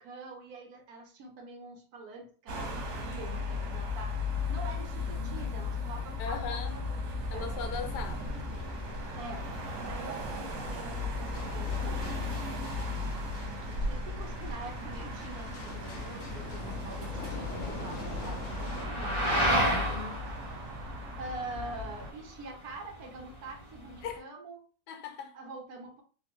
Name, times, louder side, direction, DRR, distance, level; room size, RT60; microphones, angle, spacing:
voice 1, 0.0-4.1 4.5-7.6 8.3-8.7 9.2-9.5 9.9-12.0 13.7-20.0 21.2-24.7 25.3-26.0, right 2 dB, 70° right, 1.2 m, -45 dB
sound 1, 2.5-22.1, left 2 dB, 85° right, 1.4 m, -36 dB
voice 2, 6.2-6.7 7.3-8.3 19.6-20.2 24.0-24.2 24.9-25.3, left 6 dB, 90° left, 1.2 m, -38 dB
sound 2, 8.0-18.9, left 2 dB, 65° left, 0.8 m, -46 dB
sound 3, 14.2-24.2, right 1 dB, 45° left, 0.3 m, -34 dB
3.5 x 2.1 x 2.9 m
omnidirectional pair, 1.7 m